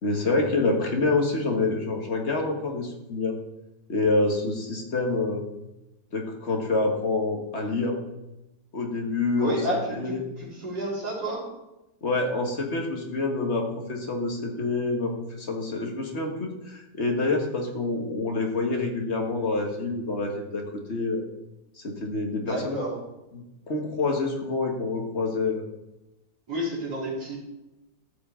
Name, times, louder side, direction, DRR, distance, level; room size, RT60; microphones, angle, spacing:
voice 1, 0.0-3.4 3.9-5.4 6.1-8.0 8.7-9.6 9.9-10.2 12.0-21.2 21.8-22.8 23.3-25.6, left 3 dB, 40° left, 2 dB, 1.6 m, -27 dB
voice 2, 9.4-11.4 22.4-22.9 26.5-27.4, right 1 dB, 60° right, -8 dB, 4.2 m, -30 dB
13.5 x 7.1 x 3.7 m, 0.94 s
omnidirectional pair, 1.9 m